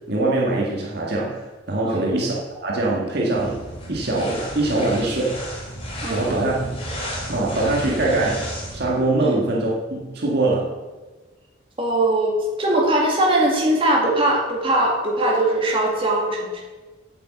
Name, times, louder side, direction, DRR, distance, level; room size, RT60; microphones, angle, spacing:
voice 1, 0.1-2.4 2.6-3.6 3.9-5.4 6.1-6.8 7.3-10.8, right 2 dB, 55° right, -3 dB, 1.8 m, -23 dB
sound 1, 3.3-8.9, equal, 30° left, 3.2 m, -33 dB
voice 2, 6.0-6.5 9.2-9.4 11.8-16.6, right 1 dB, 30° right, -2 dB, 2.3 m, -21 dB
8.3 x 8.3 x 7.4 m, 1.3 s
head